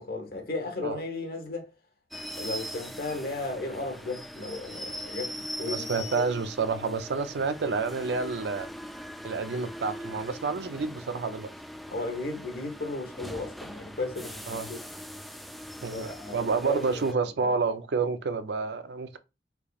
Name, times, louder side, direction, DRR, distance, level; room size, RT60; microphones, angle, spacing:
voice 1, 0.0-1.7 2.4-6.2 11.9-14.8 15.9-17.6, left 2 dB, 55° left, 1.1 m, -35 dB
sound 1, 2.1-17.1, equal, ahead, 0.4 m, -41 dB
voice 2, 5.7-8.7 9.2-11.5 14.5-14.7 15.8-19.2, right 4 dB, 70° right, 0.5 m, -29 dB
3.7 x 3.5 x 2.3 m
head